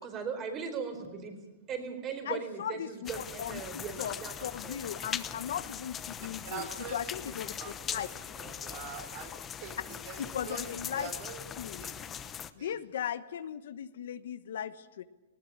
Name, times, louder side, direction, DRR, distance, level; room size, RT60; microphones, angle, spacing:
voice 1, 0.0-1.4 1.7-4.3 4.6-4.8, right 6 dB, 25° right, 6 dB, 4.3 m, -38 dB
voice 2, 2.2-8.1 10.3-11.1 11.6-11.9 12.6-15.0, left 9 dB, 75° left, 12 dB, 1.1 m, -38 dB
sound 1, 3.0-12.5, left 8 dB, 20° left, 0.8 m, -41 dB
voice 3, 6.2-12.7, right 6 dB, 50° right, 5 dB, 5.3 m, -46 dB
19.0 x 18.5 x 8.8 m, 1.1 s
hypercardioid pair, 145°, 0 cm